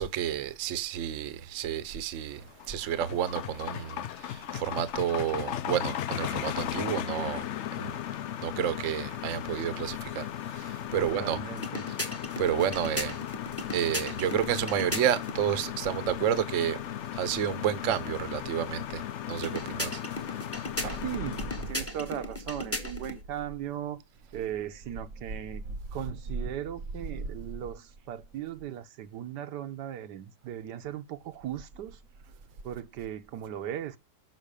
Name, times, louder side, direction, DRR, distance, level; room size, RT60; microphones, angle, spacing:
voice 1, 0.0-2.4 2.7-4.0 4.3-7.5 7.8-7.9 8.4-10.3 10.6-10.7 10.9-11.4 12.4-13.2 13.7-16.8 17.2-19.0 19.3-20.0 20.8-21.0 27.1-27.2, right 9 dB, 55° right, 1.0 m, -30 dB
sound 1, 2.4-21.8, left 11 dB, 85° left, 0.6 m, -36 dB
voice 2, 11.0-11.9 21.0-24.0 24.3-25.6 25.9-32.0 32.6-34.0, right 10 dB, 75° right, 1.3 m, -38 dB
sound 2, 11.5-15.4 19.3-23.2, left 1 dB, 10° left, 1.0 m, -37 dB
6.5 x 6.1 x 5.0 m
omnidirectional pair, 1.9 m